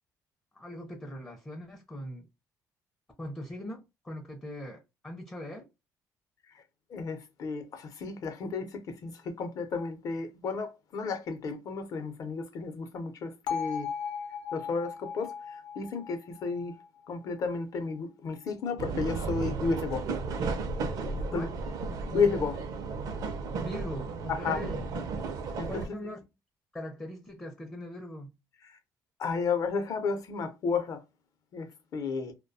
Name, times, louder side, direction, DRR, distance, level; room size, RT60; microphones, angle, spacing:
voice 1, 0.5-2.3 3.2-5.7 21.3-21.5 23.6-24.8 25.7-26.2 26.7-28.3, left 1 dB, 15° left, 0.5 m, -41 dB
voice 2, 6.9-13.9 14.5-16.8 17.1-20.1 21.2-21.5 22.1-22.6 24.3-24.6 25.6-26.1 28.6-28.8 29.2-31.0 31.5-32.3, left 5 dB, 55° left, 0.6 m, -32 dB
Bell, 13.5-17.5, left 6 dB, 85° left, 0.7 m, -37 dB
sound 1, 18.8-25.9, right 4 dB, 60° right, 0.5 m, -34 dB
2.3 x 2.2 x 2.6 m
cardioid pair, 115°, 7 cm